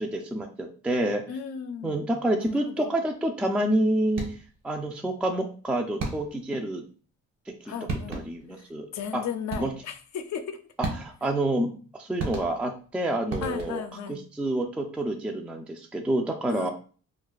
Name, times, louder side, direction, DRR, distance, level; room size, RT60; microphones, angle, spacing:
voice 1, 0.0-1.2 1.8-4.2 4.6-6.8 8.1-8.9 9.1-9.2 9.6-9.7 10.8-16.7, right 1 dB, 5° right, 3 dB, 0.3 m, -28 dB
voice 2, 1.3-2.0 2.3-2.9 7.6-8.2 8.9-10.6 13.4-14.2 16.5-16.7, left 7 dB, 65° left, 7 dB, 0.5 m, -35 dB
sound 1, 4.1-4.6 6.0-6.5 7.5-7.6 7.9-8.5 9.5-10.0 10.8-11.4 12.2-12.9 13.3-14.0, right 3 dB, 60° right, 1.3 m, -34 dB
2.4 x 2.3 x 3.8 m, 0.40 s
cardioid pair, 90°, 30 cm